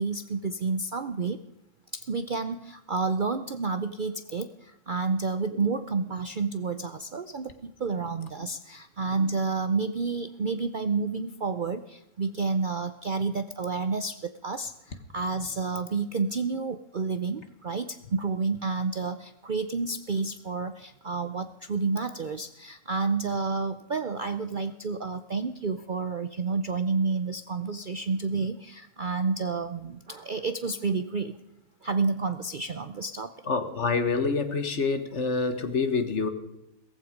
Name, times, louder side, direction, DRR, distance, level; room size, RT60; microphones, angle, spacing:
voice 1, 0.0-1.4 1.9-31.3 31.8-33.5, right 4 dB, 50° right, 10 dB, 0.6 m, -30 dB
voice 2, 33.5-36.3, left 4 dB, 50° left, 9 dB, 1.7 m, -26 dB
18.0 x 15.0 x 5.1 m, 0.86 s
omnidirectional pair, 1.5 m